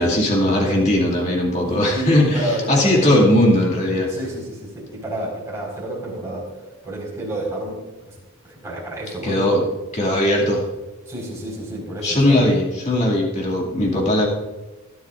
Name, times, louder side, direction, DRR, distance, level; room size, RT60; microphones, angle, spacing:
voice 1, 0.0-4.1 9.2-9.6 9.9-10.6 12.0-14.3, left 1 dB, 30° left, -1 dB, 2.3 m, -18 dB
voice 2, 1.6-3.1 3.9-6.5 6.8-8.1 8.4-9.6 11.1-12.5, right 1 dB, 15° right, -4 dB, 4.6 m, -30 dB
21.0 x 11.5 x 2.5 m, 1.2 s
head